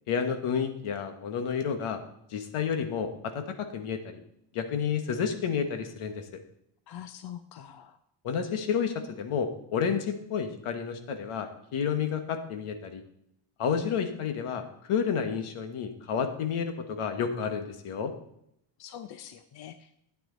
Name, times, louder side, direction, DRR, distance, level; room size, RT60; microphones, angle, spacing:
voice 1, 0.1-2.0 2.3-4.2 4.5-6.3 8.2-13.0 13.6-18.1, left 7 dB, 80° left, 7 dB, 1.6 m, -30 dB
voice 2, 6.9-8.0 18.8-20.0, left 10 dB, 50° left, 10 dB, 0.7 m, -44 dB
12.5 x 9.2 x 4.0 m, 0.77 s
cardioid pair, 160°, 50 cm